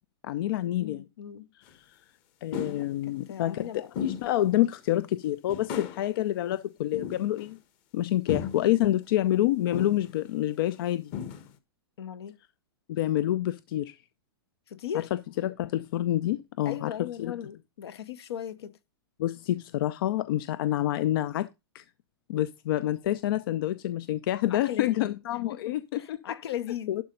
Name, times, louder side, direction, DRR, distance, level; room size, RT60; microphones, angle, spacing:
voice 1, 0.2-1.0 2.4-7.6 7.9-11.1 12.9-13.9 15.4-17.3 19.2-21.5 21.7-21.8 22.3-26.2 26.9-27.0, left 13 dB, 60° left, 0.5 m, -27 dB
voice 2, 0.8-1.5 2.7-3.9 12.0-12.4 14.7-15.1 16.6-18.8 24.5-25.2 25.5-27.0, left 10 dB, 75° left, 1.1 m, -38 dB
sound 1, 1.7-1.8 2.5-2.9 3.9-4.4 4.8-4.9 5.5-6.1 6.9-7.5 8.3-8.7 9.7-10.2 10.7-10.8 11.1-11.6, left 7 dB, 40° left, 1.3 m, -35 dB
11.5 x 3.9 x 5.4 m
hypercardioid pair, 135°, 13 cm